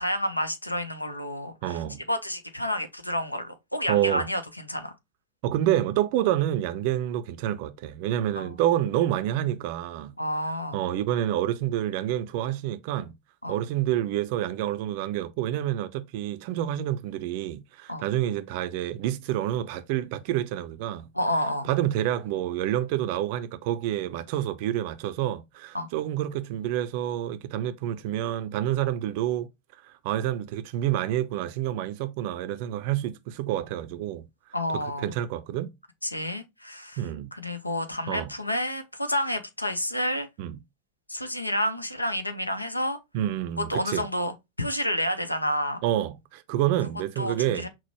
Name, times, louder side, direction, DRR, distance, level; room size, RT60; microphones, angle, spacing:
voice 1, 0.0-1.8 2.1-4.9 8.4-8.6 10.2-10.8 13.4-13.6 17.9-18.0 21.1-21.7 25.7-25.9 34.5-35.1 36.0-37.0 37.3-40.3 41.1-43.0 43.7-45.8 47.2-47.7, left 1 dB, 85° left, 0.6 m, -29 dB
voice 2, 1.6-2.0 3.9-4.3 5.4-10.1 10.7-13.1 13.5-21.0 21.6-29.5 29.9-34.2 34.7-35.7 37.0-37.3 38.1-38.3 40.4-40.6 43.1-44.1 45.8-47.7, right 12 dB, 45° right, 0.5 m, -28 dB
6.0 x 2.0 x 3.0 m
figure-of-eight pair, 90°, 0 cm